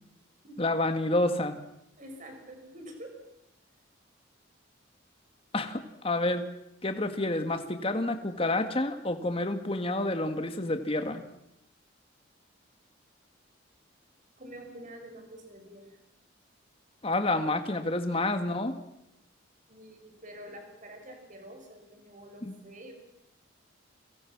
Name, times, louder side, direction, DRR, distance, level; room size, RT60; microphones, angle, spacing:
voice 1, 0.6-1.6 5.5-6.5 6.8-11.2 17.0-18.7 22.4-22.5, left 2 dB, 30° left, 7 dB, 1.8 m, -29 dB
voice 2, 2.0-3.2 14.4-16.0 19.7-22.9, right 1 dB, 40° right, 4 dB, 5.9 m, -47 dB
29.5 x 23.5 x 6.0 m, 0.84 s
head